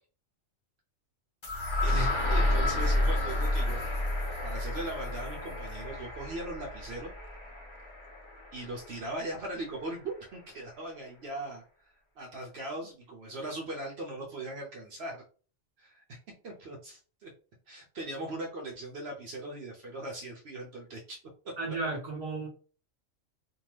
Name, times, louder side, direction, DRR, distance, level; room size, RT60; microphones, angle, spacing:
sound 1, 1.4-9.4, left 1 dB, 35° left, 0.5 m, -31 dB
voice 1, 1.8-3.9 4.4-7.1 8.5-11.6 12.2-15.2 15.8-16.2 16.4-17.3 17.7-21.2, right 1 dB, 60° right, 0.8 m, -39 dB
voice 2, 21.6-22.5, right 2 dB, 35° right, 0.9 m, -34 dB
2.7 x 2.2 x 3.1 m
omnidirectional pair, 1.3 m